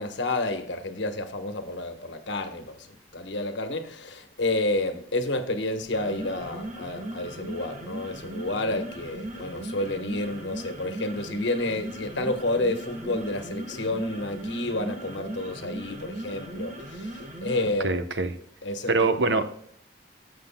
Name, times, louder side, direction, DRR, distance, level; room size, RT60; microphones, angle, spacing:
voice 1, 0.0-2.9 3.1-18.0 18.6-19.1, left 2 dB, 80° left, 1.3 m, -30 dB
sound 1, 5.8-17.8, right 1 dB, 40° right, 1.5 m, -38 dB
voice 2, 17.8-18.3 18.9-19.4, right 3 dB, 75° right, 0.9 m, -23 dB
13.0 x 7.6 x 2.2 m
head